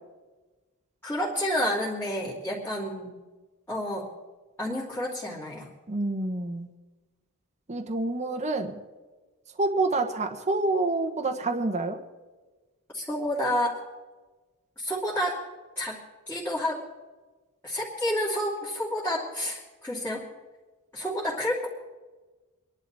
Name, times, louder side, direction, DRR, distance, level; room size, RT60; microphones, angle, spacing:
voice 1, 1.0-3.1 3.7-4.1 4.6-5.7 12.9-13.8 14.8-15.4 15.8-16.0 16.3-16.8 17.6-20.2 20.9-21.7, left 1 dB, 10° left, -8 dB, 2.9 m, -29 dB
voice 2, 5.9-6.7 7.7-8.8 9.6-12.0, right 2 dB, 30° right, 4 dB, 1.1 m, -27 dB
25.5 x 11.5 x 4.1 m, 1.3 s
head